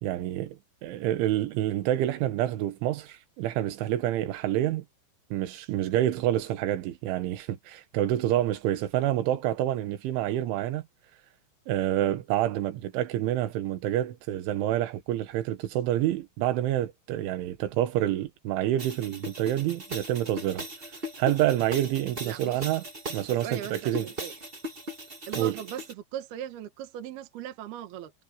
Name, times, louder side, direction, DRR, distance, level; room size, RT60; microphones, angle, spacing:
voice 1, 0.0-4.9 5.3-10.8 11.7-20.7 21.2-22.8 23.1-24.1 25.4-25.6, right 13 dB, 85° right, 3.9 m, -28 dB
sound 1, 18.8-25.9, equal, 40° right, 0.7 m, -39 dB
voice 2, 22.2-22.6 23.4-24.3 25.3-28.1, right 10 dB, 65° right, 3.2 m, -38 dB
omnidirectional pair, 5.4 m